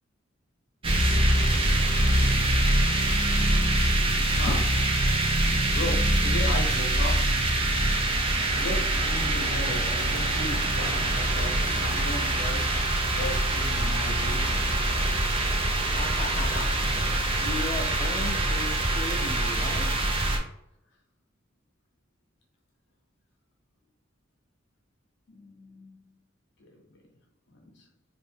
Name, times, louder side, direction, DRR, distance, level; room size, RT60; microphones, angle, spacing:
sound 1, 0.8-20.4, right 1 dB, 30° right, 0.5 m, -24 dB
voice 1, 3.7-4.6 5.7-7.5 8.5-14.7 25.3-26.0 26.6-26.8 27.6-27.9, left 1 dB, 65° left, 0.7 m, -36 dB
voice 2, 15.9-16.7 17.1-20.0, left 2 dB, 30° left, 0.5 m, -36 dB
2.7 x 2.5 x 3.4 m
head